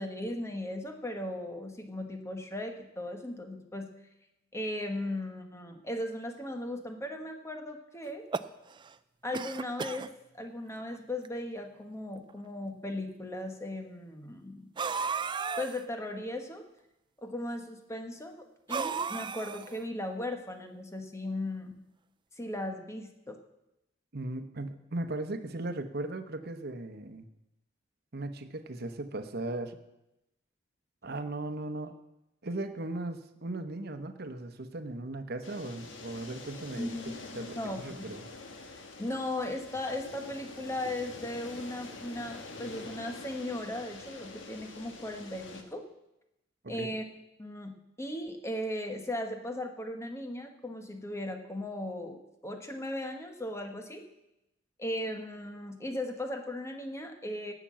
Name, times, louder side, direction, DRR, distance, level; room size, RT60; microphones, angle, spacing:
voice 1, 0.0-3.9 4.5-8.3 9.2-10.1 10.3-14.8 15.6-16.6 17.2-21.7 22.4-23.4 36.8-37.9 39.0-45.9 46.7-47.0 47.4-54.1 54.8-57.5, left 1 dB, 15° left, 4 dB, 1.3 m, -37 dB
sound 1, 8.1-8.9 9.3-10.1 10.9-11.0 11.2-11.3 12.3-12.4 14.8-15.8 18.7-19.8, right 5 dB, 25° right, 0.4 m, -34 dB
voice 2, 24.1-27.3 28.1-29.8 31.0-31.9 32.4-36.9 37.3-38.2 46.6-46.9, right 2 dB, 55° right, 8 dB, 1.0 m, -37 dB
sound 2, 35.4-45.6, left 3 dB, 75° left, 1.5 m, -46 dB
17.5 x 6.0 x 7.5 m, 0.91 s
head